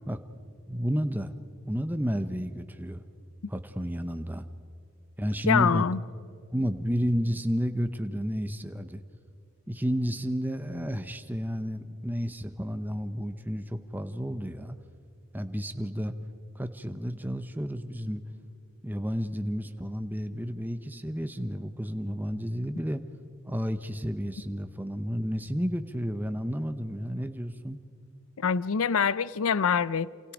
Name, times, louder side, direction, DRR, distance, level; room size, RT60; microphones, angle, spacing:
voice 1, 0.7-1.3 1.7-3.0 3.5-4.4 5.2-5.9 6.5-9.0 9.7-14.8 15.3-16.1 16.5-18.2 18.8-23.0 23.5-27.8, equal, 10° right, 0.8 m, -31 dB
voice 2, 5.5-6.0 28.4-30.1, left 6 dB, 70° left, 0.5 m, -25 dB
28.0 x 27.5 x 5.1 m
head